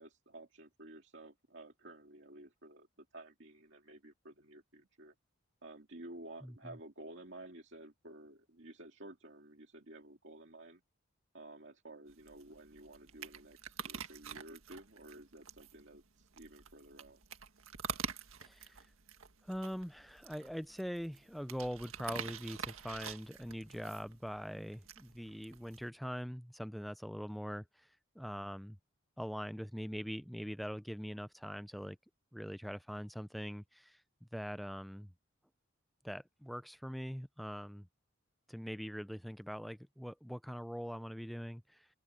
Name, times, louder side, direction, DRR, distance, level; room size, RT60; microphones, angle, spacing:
voice 1, 0.0-5.1 5.6-10.8 11.3-17.2, right 2 dB, 60° right, 2.4 m, -53 dB
voice 2, 6.4-6.8 18.4-18.9 19.4-27.9 28.2-28.8 29.2-32.0 32.3-35.1 36.0-37.9 38.5-41.9, equal, ahead, 0.4 m, -42 dB
sound 1, 12.1-25.9, right 6 dB, 85° right, 1.8 m, -47 dB
open air
head